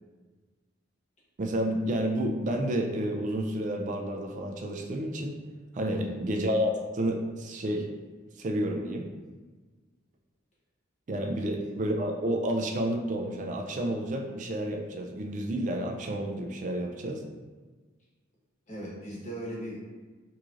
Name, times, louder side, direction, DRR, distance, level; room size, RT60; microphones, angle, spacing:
voice 1, 1.4-5.4 5.7-7.9 8.4-9.1 11.1-17.2, right 1 dB, 40° right, 2 dB, 0.3 m, -30 dB
voice 2, 5.9-6.2 11.4-11.6 18.7-19.8, right 1 dB, 35° left, -6 dB, 1.0 m, -39 dB
3.7 x 3.1 x 2.4 m, 1.3 s
head